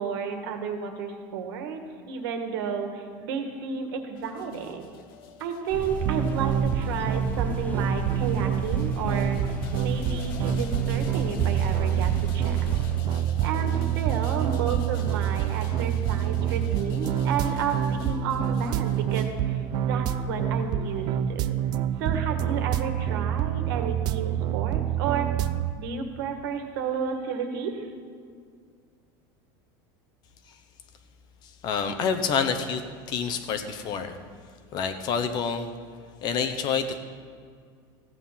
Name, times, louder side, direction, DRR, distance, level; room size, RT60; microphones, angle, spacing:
voice 1, 0.0-1.8 2.1-4.9 5.4-9.4 9.8-12.8 13.4-21.6 22.0-25.3 25.8-27.9, right 6 dB, 80° right, 5 dB, 1.8 m, -32 dB
sound 1, 4.2-24.1, left 8 dB, 75° left, 1.0 m, -46 dB
sound 2, 5.7-13.0, left 1 dB, 15° left, 0.8 m, -34 dB
sound 3, 6.0-25.7, right 10 dB, 35° right, 0.4 m, -27 dB
voice 2, 31.6-34.2 34.7-35.7 36.2-37.0, left 6 dB, 35° left, 8 dB, 1.0 m, -28 dB
15.0 x 9.1 x 5.8 m, 2.1 s
cardioid pair, 165°, 12 cm